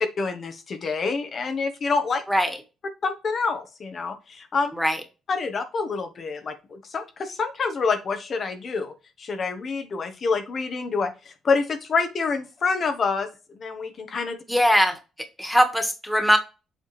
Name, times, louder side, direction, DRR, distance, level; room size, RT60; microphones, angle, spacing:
voice 1, 0.2-2.2 3.0-4.7 5.3-13.3 13.5-14.4, left 4 dB, 50° left, 7 dB, 1.3 m, -27 dB
voice 2, 14.5-15.0 15.4-16.4, equal, ahead, 6 dB, 1.8 m, -20 dB
7.8 x 4.6 x 3.3 m, 0.29 s
cardioid pair, 90°, 0 cm